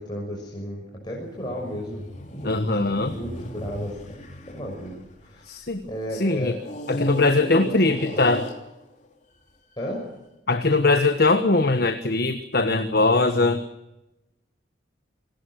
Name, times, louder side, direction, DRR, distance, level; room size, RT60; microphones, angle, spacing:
voice 1, 0.0-2.1 2.3-2.7 3.0-3.9 4.5-4.9 5.2-5.4 5.8-6.6 7.1-7.2 7.7-8.3 9.8-10.0, equal, 25° left, -2 dB, 6.3 m, -33 dB
sound 1, 1.2-5.9 6.6-9.1 9.8-9.9, left 1 dB, 40° left, 3.3 m, -37 dB
voice 2, 2.4-3.2 5.5-5.8 6.1-6.6 6.9-8.5 10.5-13.6, left 2 dB, 55° left, 8 dB, 1.4 m, -21 dB
27.5 x 18.5 x 6.5 m, 0.91 s
head